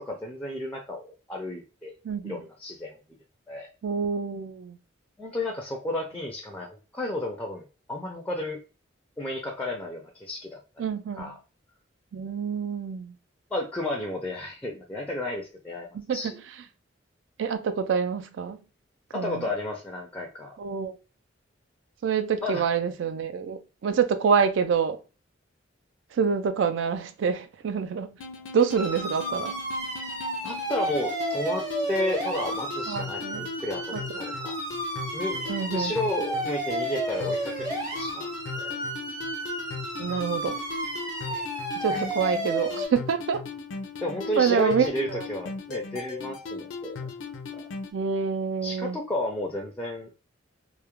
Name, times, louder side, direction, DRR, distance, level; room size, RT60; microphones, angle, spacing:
voice 1, 0.0-1.9 2.2-3.0 3.5-3.7 5.2-8.6 9.2-10.6 11.2-11.4 13.5-15.9 16.1-16.4 19.1-20.5 22.4-22.7 30.4-34.6 35.1-37.7 38.0-38.3 38.6-38.8 41.3-41.5 41.9-42.0 44.0-47.0 48.6-50.1, left 1 dB, 10° left, 0.4 m, -32 dB
voice 2, 2.0-2.4 3.8-4.8 10.8-11.4 12.1-13.1 15.9-16.3 17.4-18.6 19.1-19.5 20.6-21.0 22.0-25.0 26.1-28.2 28.5-29.5 32.9-33.5 33.9-34.0 35.5-36.0 40.0-40.6 41.8-43.4 44.4-45.3 47.9-49.0, right 6 dB, 70° right, 0.3 m, -27 dB
sound 1, 28.2-47.9, left 4 dB, 75° left, 0.4 m, -38 dB
sound 2, 28.8-42.9, right 1 dB, 20° right, 0.8 m, -32 dB
2.3 x 2.0 x 2.9 m
head